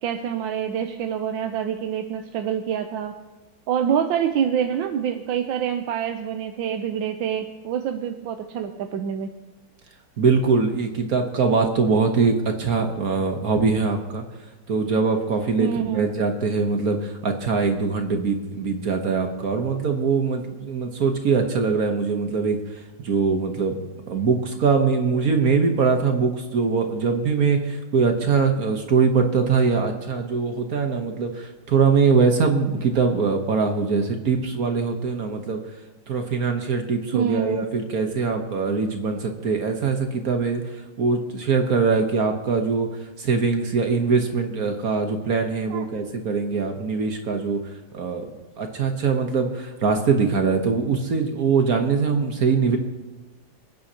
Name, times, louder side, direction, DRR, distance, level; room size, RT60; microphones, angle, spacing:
voice 1, 0.0-3.1 3.7-9.3 15.6-16.1 37.1-37.6 45.7-45.8, right 8 dB, 75° right, 6 dB, 1.4 m, -26 dB
voice 2, 10.2-14.2 14.7-23.8 24.1-35.6 36.1-48.3 48.6-52.8, right 5 dB, 50° right, 5 dB, 1.4 m, -22 dB
27.0 x 9.4 x 2.9 m, 1.2 s
omnidirectional pair, 2.2 m